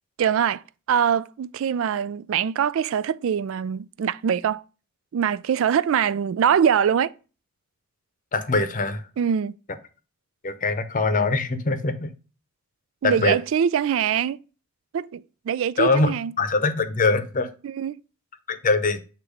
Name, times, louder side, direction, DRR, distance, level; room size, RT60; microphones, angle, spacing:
voice 1, 0.2-0.6 0.9-4.6 5.1-7.1 9.2-9.6 13.0-14.4 14.9-16.3 17.6-18.0, right 8 dB, 65° right, 0.3 m, -23 dB
voice 2, 8.3-9.1 10.4-12.1 13.0-13.4 15.8-16.1 16.4-17.5 18.5-19.0, left 3 dB, 40° left, 0.7 m, -22 dB
8.2 x 2.9 x 4.9 m
head